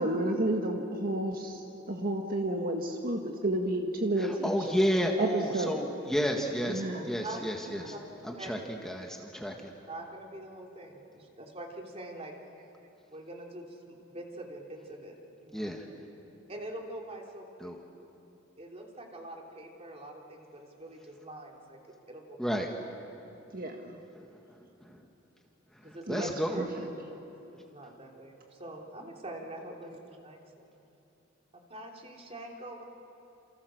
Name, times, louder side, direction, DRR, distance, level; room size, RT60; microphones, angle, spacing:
voice 1, 0.0-1.6 1.9-4.7 5.2-5.8 6.6-7.1 7.7-8.0 23.5-23.9 26.1-26.9, right 1 dB, 45° right, 2 dB, 1.7 m, -31 dB
voice 2, 4.2-6.7 7.1-7.8 8.2-9.5 15.5-15.8 17.6-17.8 22.4-22.7 26.1-26.6, equal, 5° left, 1 dB, 1.7 m, -31 dB
voice 3, 9.9-12.3 13.1-15.8 16.5-17.7 18.6-21.8 22.1-22.7 25.8-26.4 27.7-30.7 31.5-32.8, right 1 dB, 30° right, 0 dB, 3.2 m, -44 dB
29.0 x 28.5 x 6.5 m, 2.8 s
head